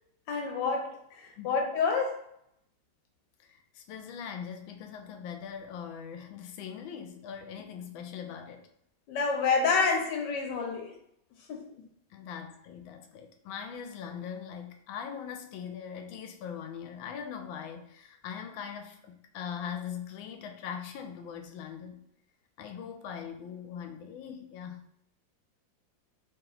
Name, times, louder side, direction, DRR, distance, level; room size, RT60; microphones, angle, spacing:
voice 1, 0.3-2.2 9.1-10.9 11.5-11.7, left 4 dB, 70° left, 2 dB, 1.3 m, -28 dB
voice 2, 3.4-8.7 12.1-22.0 22.6-24.8, left 7 dB, 90° left, 5 dB, 1.4 m, -41 dB
3.3 x 2.9 x 3.9 m, 0.73 s
omnidirectional pair, 2.1 m